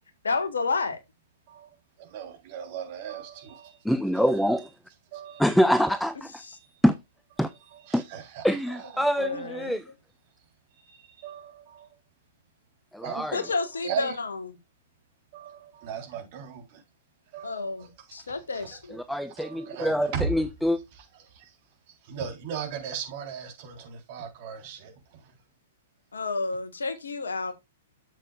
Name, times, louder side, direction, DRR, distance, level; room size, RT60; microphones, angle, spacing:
voice 1, 0.2-1.0 6.4-6.6 9.2-9.8 13.3-14.4 17.4-19.0 26.1-27.5, left 3 dB, 70° left, 1.6 m, -30 dB
voice 2, 1.5-3.8 4.1-4.7 5.1-5.7 6.4-6.8 7.5-9.6 10.7-12.0 13.0-14.2 15.3-16.8 17.3-18.8 19.3-20.5 20.9-21.6 21.9-25.4, right 7 dB, 40° right, 3.8 m, -39 dB
voice 3, 3.8-4.7 5.4-6.3 6.8-6.9 7.4-7.5 7.9-8.0 8.4-9.8 12.9-13.4 18.9-20.8, equal, ahead, 0.5 m, -24 dB
12.0 x 7.4 x 2.4 m
figure-of-eight pair, 110°, 0 cm